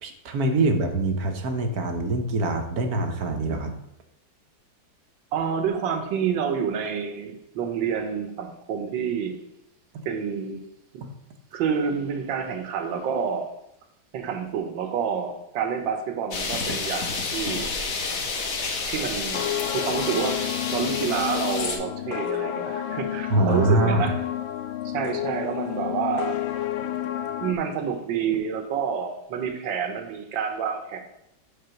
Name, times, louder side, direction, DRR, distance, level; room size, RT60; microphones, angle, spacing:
voice 1, 0.0-3.7 23.3-24.1, right 2 dB, 60° right, 5 dB, 1.1 m, -24 dB
voice 2, 5.3-9.4 10.0-10.6 10.9-11.0 11.5-13.5 14.1-17.7 18.8-19.4 19.7-20.4 20.7-24.1 24.9-26.4 27.4-31.0, right 7 dB, 75° right, 5 dB, 1.6 m, -28 dB
sound 1, 16.3-21.8, left 4 dB, 50° left, 1.2 m, -30 dB
sound 2, 19.1-27.5, left 12 dB, 85° left, 1.4 m, -30 dB
6.8 x 4.2 x 5.7 m, 0.81 s
omnidirectional pair, 2.1 m